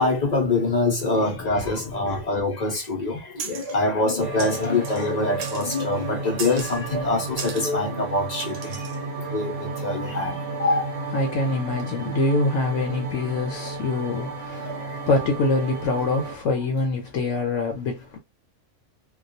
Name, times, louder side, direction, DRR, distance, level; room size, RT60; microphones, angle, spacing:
voice 1, 0.0-8.9 9.2-11.0 13.1-13.2 14.6-15.0, left 2 dB, 50° left, 0.5 m, -25 dB
sound 1, 3.4-3.8 4.4-5.1 5.4-5.9 6.4-6.8 7.4-7.7 8.4-9.0, right 6 dB, 80° right, 1.0 m, -36 dB
sound 2, 4.2-16.4, right 3 dB, 55° right, 0.9 m, -33 dB
voice 2, 11.1-18.2, left 2 dB, 70° left, 0.9 m, -25 dB
2.3 x 2.2 x 2.5 m
omnidirectional pair, 1.5 m